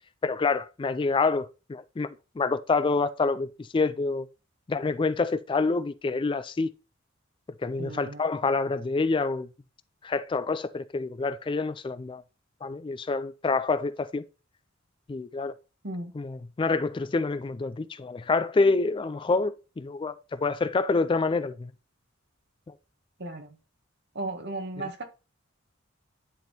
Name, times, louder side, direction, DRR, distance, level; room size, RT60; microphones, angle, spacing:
voice 1, 0.2-4.3 4.7-6.7 7.6-9.5 10.0-12.2 12.6-14.3 15.1-15.5 16.1-21.7 22.7-22.8 24.8-24.9, left 3 dB, 25° left, 0.3 m, -27 dB
voice 2, 7.8-8.2 15.8-16.1 23.2-23.5 24.1-25.0, right 2 dB, 55° right, 1.5 m, -35 dB
10.5 x 3.7 x 4.2 m
head